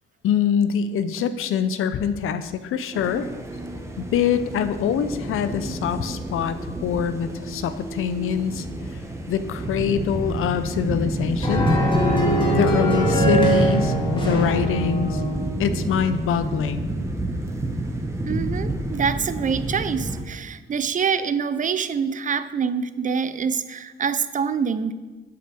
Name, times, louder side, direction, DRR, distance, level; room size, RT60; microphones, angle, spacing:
voice 1, 0.2-3.3 4.0-8.7 9.3-11.7 12.5-15.2 15.6-16.9, left 8 dB, 90° left, 11 dB, 0.6 m, -24 dB
sound 1, 2.9-20.2, right 1 dB, 15° right, 0.9 m, -28 dB
sound 2, 11.4-15.6, right 1 dB, 25° left, 1.9 m, -22 dB
voice 2, 18.2-24.9, right 6 dB, 40° right, 13 dB, 0.4 m, -25 dB
7.9 x 5.7 x 6.2 m, 1.3 s
cardioid pair, 130°, 21 cm